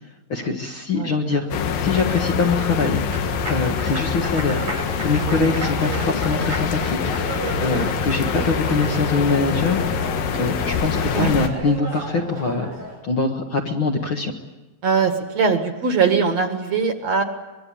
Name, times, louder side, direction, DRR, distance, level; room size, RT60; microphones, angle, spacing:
voice 1, 0.3-1.5 1.8-3.0 3.5-4.7 5.0-7.0 7.6-10.0 10.4-12.7 13.0-14.3, left 4 dB, 45° left, 2 dB, 1.8 m, -23 dB
Applause, 1.2-13.0, right 2 dB, 90° right, 8.0 m, -32 dB
sound 1, 1.5-11.5, left 7 dB, 80° left, 3.1 m, -25 dB
voice 2, 14.8-17.2, right 5 dB, 55° right, 6 dB, 2.6 m, -21 dB
24.5 x 23.0 x 8.7 m, 1.1 s
omnidirectional pair, 4.0 m